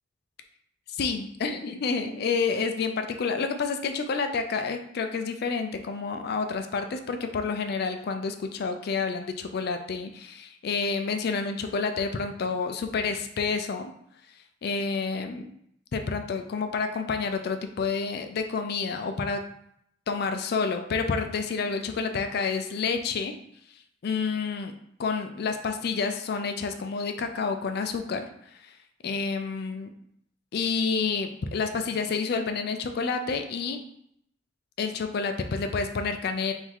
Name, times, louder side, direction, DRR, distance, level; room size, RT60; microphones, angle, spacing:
voice 1, 0.9-13.9 14.6-15.5 15.9-19.4 20.1-23.3 24.0-24.7 25.0-28.3 28.6-28.7 29.0-29.9 30.5-33.8 34.8-36.5, left 5 dB, 55° left, 7 dB, 0.4 m, -29 dB
3.8 x 2.7 x 4.5 m, 0.72 s
head